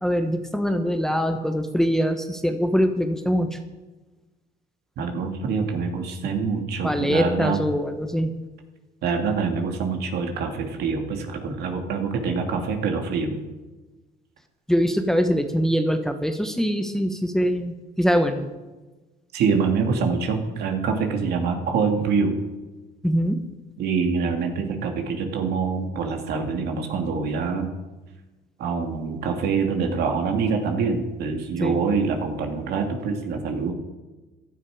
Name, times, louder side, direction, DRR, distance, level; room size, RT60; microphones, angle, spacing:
voice 1, 0.0-3.6 6.8-8.3 14.7-18.5 23.0-23.4 31.6-31.8, equal, 5° left, 6 dB, 1.3 m, -23 dB
voice 2, 5.0-7.6 9.0-13.4 19.3-22.4 23.8-27.7 28.6-33.7, right 5 dB, 75° right, 3 dB, 2.7 m, -25 dB
16.5 x 12.0 x 5.1 m, 1.2 s
cardioid pair, 110°, 17 cm